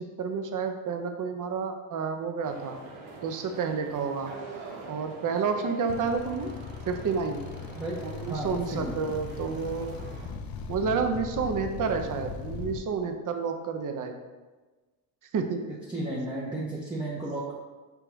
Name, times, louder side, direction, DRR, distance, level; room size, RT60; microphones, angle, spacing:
voice 1, 0.0-2.8 3.2-4.3 4.9-6.5 6.9-7.4 8.0-10.0 10.7-14.2 15.3-15.6 16.1-16.2, right 5 dB, 40° right, 6 dB, 0.6 m, -30 dB
sound 1, 2.4-10.3, right 3 dB, 70° right, 0.9 m, -45 dB
sound 2, 5.9-12.8, left 5 dB, 45° left, 0.6 m, -39 dB
voice 2, 8.3-9.0 15.9-17.5, right 2 dB, 10° right, -5 dB, 0.9 m, -33 dB
4.5 x 3.5 x 3.0 m, 1.3 s
hypercardioid pair, 60°, 50 cm